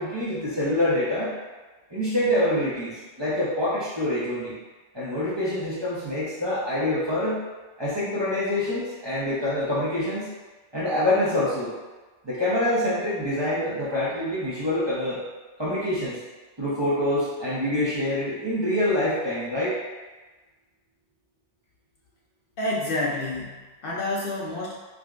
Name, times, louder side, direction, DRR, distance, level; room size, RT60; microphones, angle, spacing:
voice 1, 0.0-1.3 1.9-4.5 4.9-7.4 7.8-10.3 10.7-11.7 12.2-15.2 15.6-16.2 16.6-19.8, left 1 dB, 25° right, -10 dB, 0.7 m, -26 dB
voice 2, 22.6-24.7, left 1 dB, 60° left, -5 dB, 0.7 m, -29 dB
4.8 x 2.1 x 2.4 m, 1.2 s
omnidirectional pair, 1.2 m